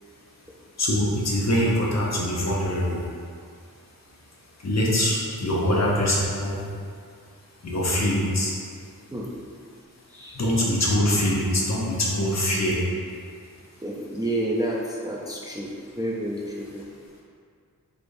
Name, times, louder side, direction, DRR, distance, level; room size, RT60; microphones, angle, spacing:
voice 1, 0.8-3.0 4.6-6.6 7.6-8.5 10.3-12.8, left 1 dB, 50° left, -5 dB, 0.8 m, -23 dB
voice 2, 10.1-10.4 13.8-16.9, right 1 dB, 10° right, -5 dB, 0.4 m, -30 dB
4.4 x 3.5 x 2.6 m, 2.2 s
wide cardioid pair, 95°, 34 cm